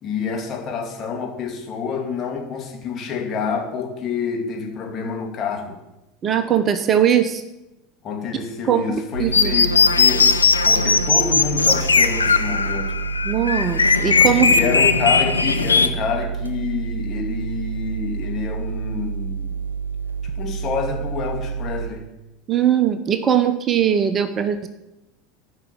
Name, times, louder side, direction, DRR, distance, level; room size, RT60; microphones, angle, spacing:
voice 1, 0.0-5.8 8.0-10.4 10.6-13.0 14.4-19.5 20.4-22.1, left 5 dB, 35° left, 2 dB, 2.6 m, -27 dB
voice 2, 6.2-7.4 8.7-9.5 13.2-14.6 22.5-24.7, right 9 dB, 30° right, 10 dB, 0.9 m, -20 dB
sound 1, 9.1-21.9, right 6 dB, 85° right, 0.9 m, -29 dB
sound 2, 9.3-15.9, left 5 dB, 80° left, 0.6 m, -18 dB
13.5 x 5.8 x 7.5 m, 0.94 s
figure-of-eight pair, 75°, 0 cm